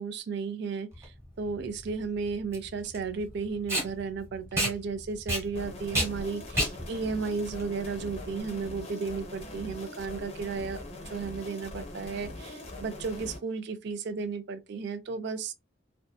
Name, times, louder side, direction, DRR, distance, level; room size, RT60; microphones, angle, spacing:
voice 1, 0.0-10.8 11.0-15.5, right 5 dB, 55° right, 0.3 m, -34 dB
Packing tape duct tape, 0.9-8.4, equal, 15° right, 1.0 m, -32 dB
sound 1, 5.5-13.4, left 2 dB, 30° left, 0.7 m, -42 dB
2.6 x 2.3 x 2.2 m
head